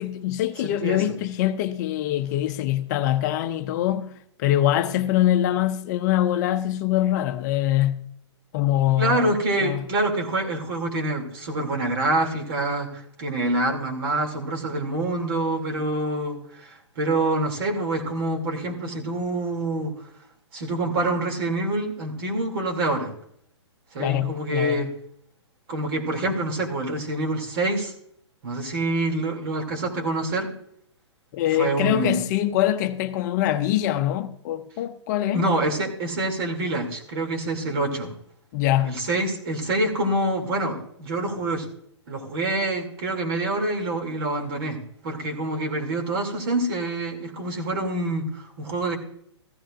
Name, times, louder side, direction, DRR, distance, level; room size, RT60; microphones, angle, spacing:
voice 1, 0.0-8.1 8.5-9.3 9.6-9.8 24.0-24.9 31.3-35.4 38.5-39.0, left 13 dB, 40° left, 0.7 m, -24 dB
voice 2, 0.6-1.0 9.0-19.9 20.5-23.1 23.9-24.9 25.7-27.9 28.4-30.5 31.5-32.2 35.3-38.1 38.8-41.7 42.1-49.0, right 2 dB, 50° right, 2.7 m, -26 dB
15.0 x 13.5 x 2.5 m
hypercardioid pair, 130°, 15 cm